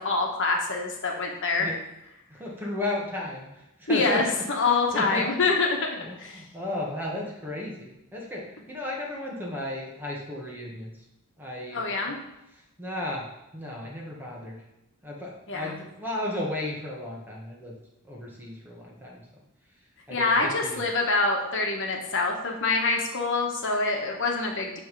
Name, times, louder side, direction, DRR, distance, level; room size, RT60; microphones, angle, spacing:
voice 1, 0.0-1.7 3.9-5.8 6.2-6.4 11.7-12.2 15.5-15.7 20.1-24.8, left 3 dB, 55° left, 1 dB, 1.4 m, -25 dB
voice 2, 2.3-4.2 4.5-5.6 6.0-10.9 11.4-12.1 12.5-13.3 13.5-14.6 15.0-17.8 18.1-19.2 20.1-20.8, left 1 dB, 10° right, -3 dB, 1.6 m, -34 dB
9.3 x 3.6 x 5.4 m, 0.89 s
head